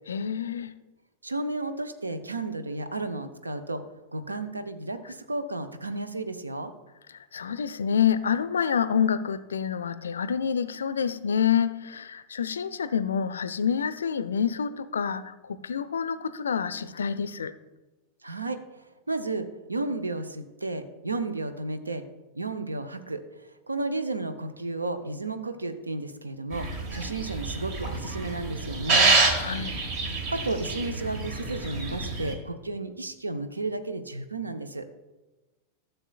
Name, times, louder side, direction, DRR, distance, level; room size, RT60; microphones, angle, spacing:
voice 1, 0.1-0.8 7.1-17.5 29.4-29.8, left 7 dB, 70° left, 14 dB, 0.4 m, -27 dB
voice 2, 1.2-3.8 4.1-6.7 18.2-18.6 19.1-22.0 22.3-23.2 23.7-29.1 30.3-34.9, right 2 dB, 80° right, 9 dB, 0.6 m, -33 dB
sound 1, 26.5-32.3, right 3 dB, 45° right, 1.3 m, -27 dB
13.5 x 6.7 x 2.4 m, 1.1 s
figure-of-eight pair, 90°, 0 cm